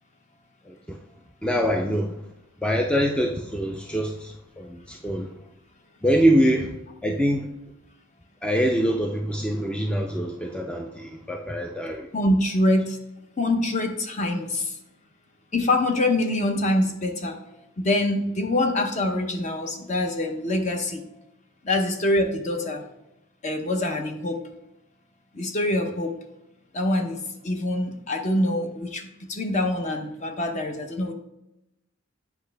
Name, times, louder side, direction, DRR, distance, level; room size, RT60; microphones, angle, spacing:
voice 1, 0.7-1.0 1.4-2.2 2.6-5.3 6.0-6.8 7.0-7.5 8.4-12.1, equal, 5° left, 2 dB, 0.4 m, -24 dB
voice 2, 12.1-13.0 13.4-14.7 15.5-17.4 17.8-21.1 21.6-22.8 23.4-24.4 25.3-26.1 26.7-31.1, left 1 dB, 35° left, 5 dB, 0.8 m, -25 dB
8.3 x 5.6 x 3.4 m, 0.88 s
head